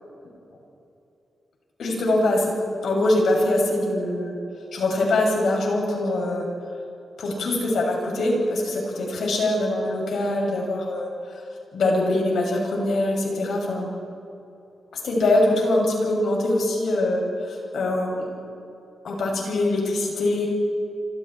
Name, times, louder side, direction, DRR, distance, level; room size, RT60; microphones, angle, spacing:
voice 1, 1.8-2.5 2.8-4.3 4.7-6.4 7.2-11.4 11.7-13.9 15.0-18.3 19.0-20.5, left 1 dB, 80° left, -1 dB, 7.0 m, -23 dB
27.0 x 27.0 x 4.5 m, 2.8 s
cardioid pair, 105°, 0 cm